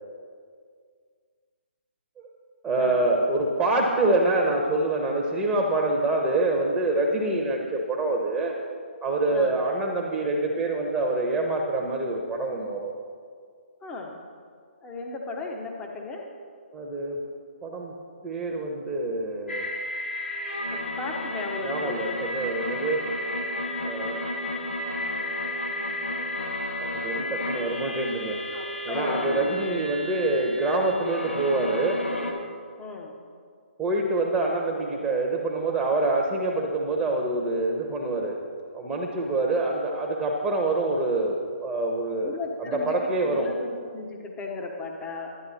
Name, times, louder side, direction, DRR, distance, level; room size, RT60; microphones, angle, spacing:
voice 1, 2.6-8.6 9.0-12.9 16.7-17.2 17.6-17.9 18.2-19.7 21.6-23.0 23.8-24.2 26.8-28.4 28.8-32.0 33.8-38.4 38.7-42.3 42.6-43.5, right 2 dB, 10° right, 0 dB, 1.0 m, -26 dB
voice 2, 13.8-14.2 14.8-16.3 20.7-22.2 28.5-29.4 32.8-33.2 42.2-45.4, left 3 dB, 15° left, 1 dB, 1.0 m, -36 dB
sound 1, 19.5-32.3, left 1 dB, 85° left, 1.6 m, -32 dB
11.5 x 9.4 x 4.3 m, 2.1 s
figure-of-eight pair, 140°, 6 cm